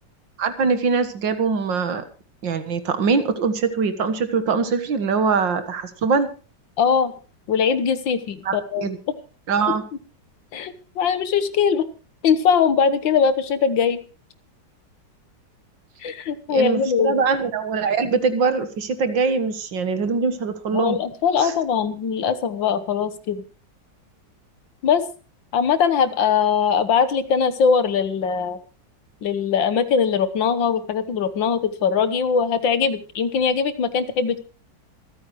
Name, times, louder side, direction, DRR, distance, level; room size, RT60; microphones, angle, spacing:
voice 1, 0.4-2.0 2.4-6.3 8.5-9.0 9.5-9.8 16.5-21.0 21.4-21.5, right 5 dB, 80° right, 10 dB, 2.2 m, -22 dB
voice 2, 6.8-7.1 7.5-8.9 10.5-11.9 12.2-14.0 16.0-17.2 20.7-23.5 24.8-25.1 25.5-28.6 29.2-34.4, left 6 dB, 85° left, 13 dB, 2.0 m, -21 dB
25.5 x 9.6 x 3.1 m, 0.36 s
omnidirectional pair, 2.0 m